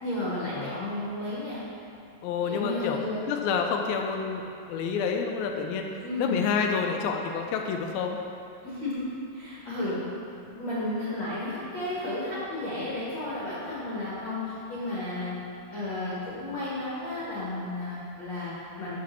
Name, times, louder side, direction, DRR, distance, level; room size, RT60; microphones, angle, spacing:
voice 1, 0.0-1.6 2.4-3.3 6.0-6.4 8.6-9.1 9.3-10.0 10.5-15.3 15.7-19.0, left 2 dB, 45° left, -10 dB, 1.5 m, -33 dB
voice 2, 2.2-3.0 3.3-8.2, left 6 dB, 80° left, 3 dB, 2.2 m, -29 dB
7.7 x 5.1 x 6.7 m, 2.5 s
omnidirectional pair, 4.6 m